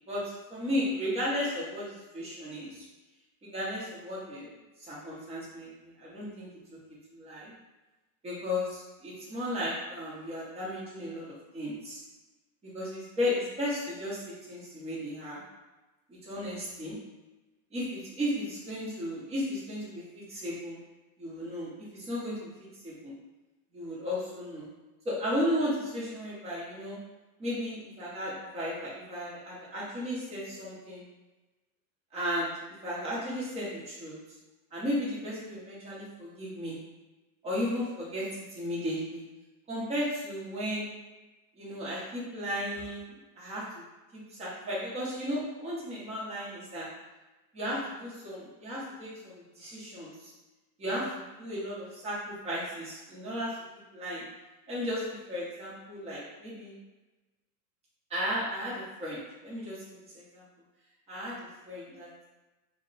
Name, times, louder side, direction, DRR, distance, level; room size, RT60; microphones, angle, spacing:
voice 1, 0.1-2.9 3.4-4.5 4.9-6.5 7.1-7.5 8.2-12.0 12.7-15.4 16.1-17.0 17.7-20.8 21.2-22.5 22.8-23.1 23.7-24.7 25.0-27.0 27.4-31.0 32.1-32.5 32.8-34.2 34.7-36.8 37.4-39.2 39.7-40.9 41.6-43.8 44.1-46.9 47.5-50.3 50.8-53.5 53.9-54.2 54.7-56.8 58.1-60.4 61.1-61.4 61.7-62.1, equal, 15° right, -7 dB, 0.7 m, -35 dB
2.2 x 2.1 x 3.8 m, 1.1 s
supercardioid pair, 145°, 46 cm